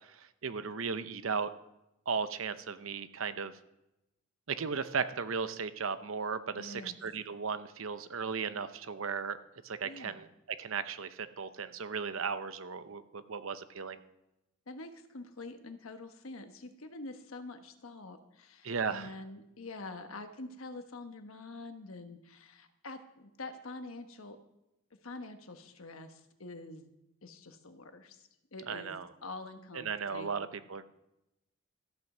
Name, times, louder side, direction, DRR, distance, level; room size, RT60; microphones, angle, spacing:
voice 1, 0.2-1.5 2.1-3.5 4.5-9.4 9.6-10.3 10.6-14.0 18.6-19.1 28.7-29.1 29.8-30.8, right 5 dB, 80° right, 12 dB, 0.8 m, -36 dB
voice 2, 6.6-7.0 9.8-10.2 14.7-24.4 25.0-26.9 27.2-30.4, left 2 dB, 90° left, 7 dB, 1.2 m, -46 dB
14.0 x 8.1 x 6.1 m, 0.89 s
head